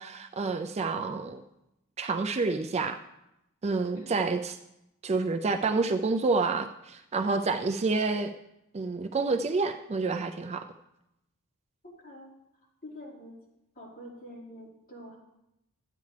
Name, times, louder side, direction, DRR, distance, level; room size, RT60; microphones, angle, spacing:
voice 1, 0.0-1.4 2.0-3.0 3.6-4.6 5.0-8.3 8.7-10.6, right 3 dB, 30° right, 7 dB, 0.4 m, -28 dB
voice 2, 11.8-12.3 12.8-13.3 13.7-15.2, equal, 40° left, -6 dB, 4.2 m, -46 dB
12.5 x 9.3 x 3.3 m, 0.86 s
head